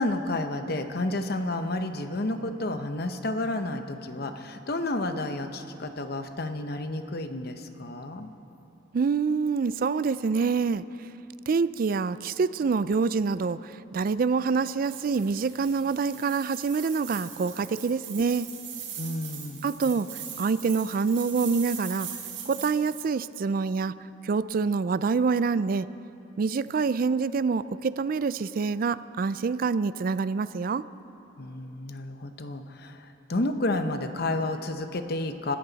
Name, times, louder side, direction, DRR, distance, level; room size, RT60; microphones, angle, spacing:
voice 1, 0.0-8.3 19.0-19.7 31.4-35.6, left 2 dB, 55° left, 8 dB, 0.9 m, -31 dB
voice 2, 8.9-10.8 11.5-18.5 19.6-20.1 20.4-22.1 22.5-23.9 24.2-25.9 26.4-30.8, right 5 dB, 50° right, 16 dB, 0.4 m, -26 dB
sound 1, 14.8-23.1, right 8 dB, 70° right, 4.4 m, -41 dB
25.5 x 14.0 x 4.1 m, 2.9 s
head